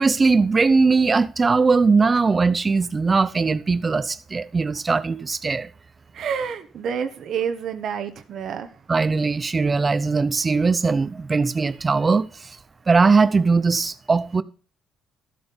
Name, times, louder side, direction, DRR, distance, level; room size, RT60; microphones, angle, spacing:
voice 1, 0.0-5.7 8.9-12.5 12.9-14.4, right 4 dB, 30° right, 0.8 m, -20 dB
voice 2, 6.1-8.7, right 7 dB, 65° right, 1.3 m, -28 dB
13.0 x 8.0 x 5.3 m
cardioid pair, 85°, 0 cm